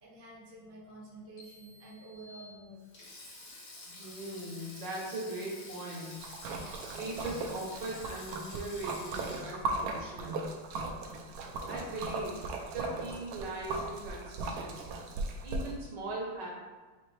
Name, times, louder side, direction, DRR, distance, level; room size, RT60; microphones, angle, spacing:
voice 1, 0.0-2.8, right 2 dB, 15° right, -6 dB, 0.6 m, -49 dB
sound 1, 1.4-3.3, left 2 dB, 80° left, 1.6 m, -57 dB
Sink (filling or washing), 2.8-11.3 11.5-11.8 12.9-13.2, left 2 dB, 60° left, 0.7 m, -50 dB
voice 2, 3.9-6.2 6.8-10.5 11.7-12.4 12.7-15.0 15.4-16.5, right 2 dB, 65° right, -3 dB, 1.4 m, -40 dB
Splash splatter, 6.2-15.7, right 3 dB, 85° right, 0.8 m, -38 dB
5.0 x 2.9 x 3.1 m, 1.3 s
omnidirectional pair, 2.2 m